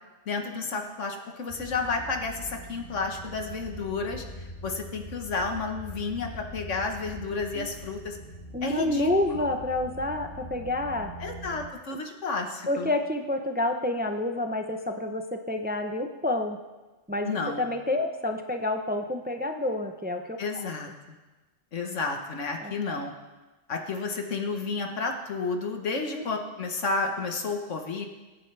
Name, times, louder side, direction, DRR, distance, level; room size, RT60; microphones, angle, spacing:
voice 1, 0.3-4.2 4.6-8.2 8.6-9.1 11.2-12.9 17.2-17.6 20.4-20.9 21.7-23.1 23.7-28.1, left 4 dB, 80° left, 3 dB, 1.6 m, -31 dB
sound 1, 1.5-11.7, equal, 35° left, 2.6 m, -43 dB
voice 2, 8.5-11.1 12.7-16.6 17.1-20.4 22.6-23.0 26.1-26.2, left 1 dB, 10° right, 5 dB, 0.6 m, -29 dB
24.0 x 9.1 x 3.4 m, 1.2 s
omnidirectional pair, 1.2 m